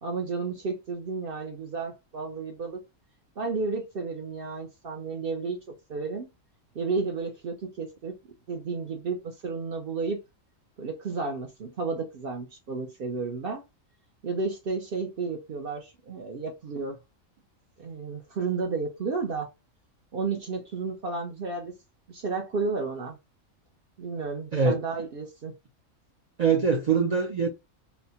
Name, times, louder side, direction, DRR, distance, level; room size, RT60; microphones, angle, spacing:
voice 1, 0.0-2.8 3.4-5.6 5.9-6.3 6.7-8.1 8.5-10.2 10.8-13.6 14.2-17.0 17.8-19.5 20.1-21.7 22.1-23.2 24.0-25.5, right 4 dB, 55° right, 0.6 m, -32 dB
voice 2, 26.4-27.5, right 5 dB, 90° right, 0.3 m, -23 dB
4.0 x 2.0 x 2.7 m
omnidirectional pair, 1.4 m